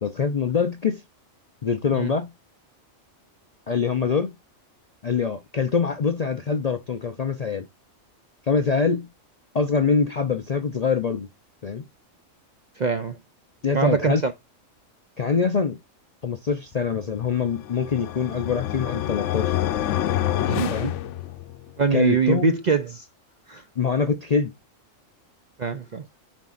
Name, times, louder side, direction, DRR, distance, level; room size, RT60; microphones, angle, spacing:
voice 1, 0.0-1.0 1.6-2.3 3.7-4.3 5.0-7.7 8.4-9.1 9.5-11.3 11.6-11.8 13.6-14.2 15.2-15.8 16.2-19.5 20.7-20.9 21.9-22.5 23.8-24.5, left 5 dB, 50° left, 0.4 m, -24 dB
voice 2, 12.8-13.2 13.7-14.3 20.4-21.0 21.8-23.1 23.5-23.6 25.6-26.0, right 5 dB, 55° right, 0.5 m, -23 dB
sound 1, 17.4-21.7, left 12 dB, 70° left, 0.9 m, -27 dB
9.4 x 4.5 x 2.4 m
omnidirectional pair, 1.3 m